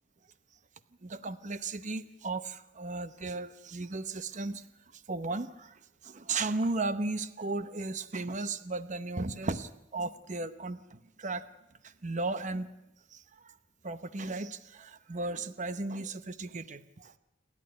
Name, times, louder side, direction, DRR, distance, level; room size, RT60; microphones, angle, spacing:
voice 1, 1.0-4.6 4.9-11.4 11.8-12.7 13.1-13.5 13.8-17.1, right 3 dB, 40° right, 12 dB, 0.9 m, -35 dB
29.0 x 11.5 x 9.6 m, 0.89 s
head